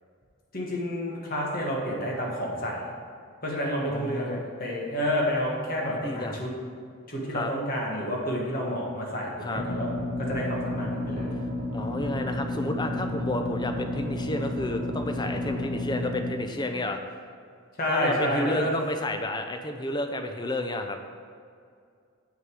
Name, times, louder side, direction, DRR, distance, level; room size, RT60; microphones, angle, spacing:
voice 1, 0.5-2.9 3.4-6.5 7.1-9.9 10.2-11.4 17.8-18.8, equal, 40° left, -2 dB, 1.6 m, -29 dB
voice 2, 3.9-4.5 5.9-6.4 7.3-7.5 9.4-9.6 11.7-17.0 17.9-21.0, left 1 dB, 20° left, 6 dB, 0.5 m, -31 dB
sound 1, 9.5-16.3, left 1 dB, 40° right, 1.5 m, -31 dB
7.7 x 6.4 x 4.7 m, 2.3 s
head